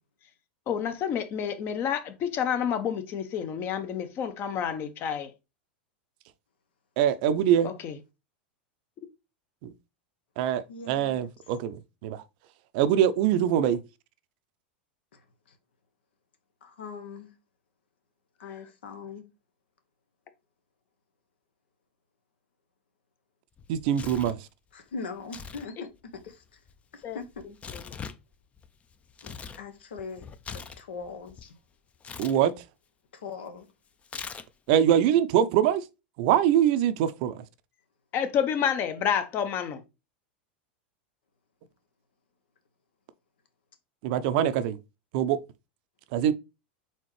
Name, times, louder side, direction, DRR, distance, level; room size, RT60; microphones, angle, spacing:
voice 1, 0.7-5.3 7.6-8.0 18.5-18.6 27.0-27.2 27.4-28.0 38.1-39.8, left 8 dB, 40° left, 0.8 m, -29 dB
voice 2, 7.0-7.7 10.4-12.2 12.7-13.8 23.7-24.4 32.2-32.6 34.7-35.8 36.2-37.4 44.0-44.8 45.1-45.4 46.1-46.3, right 10 dB, 60° right, 0.5 m, -23 dB
voice 3, 10.7-11.2 16.6-17.3 18.4-19.2 24.7-25.9 26.2-26.3 26.9-27.4 29.2-29.3 29.6-30.3 30.5-31.5 33.2-33.7, left 4 dB, 80° left, 0.9 m, -40 dB
Tearing, 23.6-24.4 25.2-25.7 25.9-29.6 30.0-31.5 32.0-32.4 34.0-34.7, left 6 dB, 25° left, 0.4 m, -42 dB
4.3 x 3.6 x 3.1 m
hypercardioid pair, 105°, 6 cm